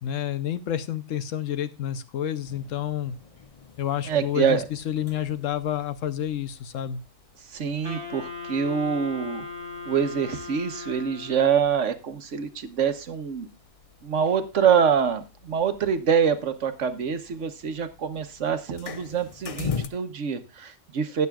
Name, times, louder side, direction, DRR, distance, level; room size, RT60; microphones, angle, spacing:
voice 1, 0.0-3.2 3.8-7.0, left 10 dB, 75° left, 12 dB, 1.1 m, -29 dB
sound 1, 2.4-19.9, left 6 dB, 45° left, 0.4 m, -43 dB
voice 2, 4.1-4.6 7.5-9.4 9.9-13.5 14.0-21.3, right 7 dB, 65° right, 9 dB, 1.3 m, -25 dB
Wind instrument woodwind instrument, 7.8-11.7, left 4 dB, 15° right, 6.9 m, -38 dB
19.0 x 6.7 x 2.4 m, 0.26 s
omnidirectional pair, 1.4 m